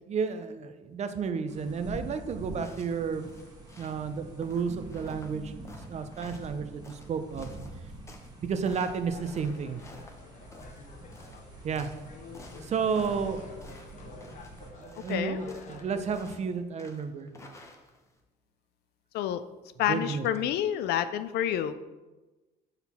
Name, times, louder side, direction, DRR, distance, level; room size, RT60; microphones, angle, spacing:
voice 1, 0.1-3.3 3.8-7.5 8.4-9.8 11.6-11.9 12.6-13.5 14.1-17.3 19.9-20.2, right 5 dB, 40° right, 9 dB, 0.5 m, -32 dB
sound 1, 1.5-14.7, right 2 dB, 25° right, 1.2 m, -46 dB
sound 2, 2.4-18.2, left 2 dB, 15° left, 0.8 m, -53 dB
sound 3, 9.1-16.2, left 4 dB, 45° left, 0.8 m, -48 dB
voice 2, 15.1-15.4 19.1-19.4 19.8-21.7, left 11 dB, 75° left, 12 dB, 0.4 m, -28 dB
6.0 x 4.0 x 4.2 m, 1.2 s
cardioid pair, 110°, 17 cm